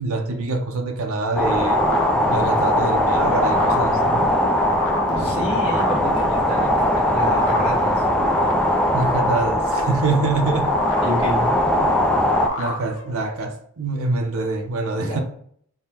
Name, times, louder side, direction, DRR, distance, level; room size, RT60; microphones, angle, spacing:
voice 1, 0.0-1.8 2.3-4.3 8.9-10.8 12.6-15.2, right 3 dB, 65° right, 0.6 m, -25 dB
sound 1, 1.0-13.4, left 3 dB, 60° left, 0.7 m, -30 dB
sound 2, 1.4-12.5, left 1 dB, 5° left, 0.3 m, -20 dB
voice 2, 5.1-8.0 11.0-11.5 14.9-15.2, equal, 25° left, 1.4 m, -29 dB
sound 3, 5.1-8.7, equal, 20° right, 0.7 m, -36 dB
3.5 x 2.1 x 4.3 m
head